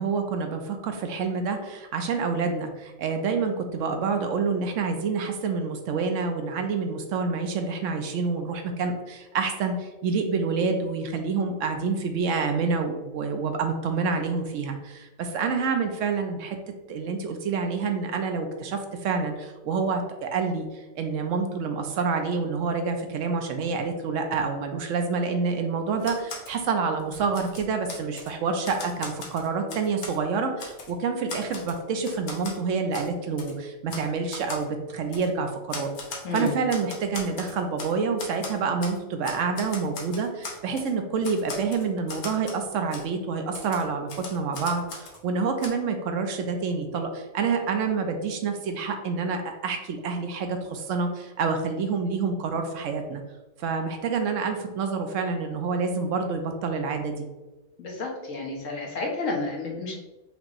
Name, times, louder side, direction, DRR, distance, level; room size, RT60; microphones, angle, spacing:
voice 1, 0.0-16.6 16.9-35.9 36.3-53.2 53.6-57.3, right 5 dB, 75° right, 5 dB, 0.9 m, -28 dB
Typewriter, 26.0-26.6 27.0-28.3 28.6-30.2 30.6-30.9 31.3-32.6 32.9-33.1 33.4-33.5 33.9-34.1 34.3-34.6 35.1-35.3 35.7-37.9 38.2-39.0 39.2-40.9 41.2-42.6 42.9-43.0 43.5-45.2 45.6-45.7, left 4 dB, 60° left, 1.0 m, -39 dB
voice 2, 36.2-36.6 57.8-60.0, left 3 dB, 75° left, -1 dB, 1.3 m, -31 dB
5.2 x 3.0 x 2.5 m, 1.1 s
omnidirectional pair, 1.3 m